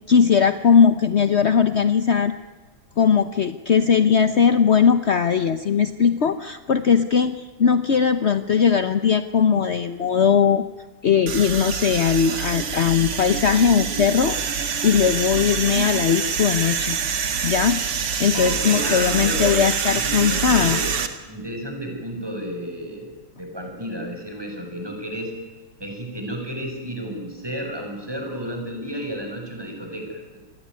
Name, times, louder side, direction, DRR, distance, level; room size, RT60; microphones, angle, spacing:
voice 1, 0.1-2.3 3.0-10.6 11.0-17.0 17.4-20.8, left 7 dB, 50° left, 11 dB, 0.8 m, -19 dB
sound 1, 11.3-21.1, right 6 dB, 85° right, 3.0 m, -26 dB
voice 2, 18.3-19.5 19.9-20.9 21.3-23.1 23.4-25.3 25.8-30.4, equal, 10° right, 2 dB, 6.9 m, -32 dB
28.0 x 21.0 x 9.6 m, 1.3 s
omnidirectional pair, 2.4 m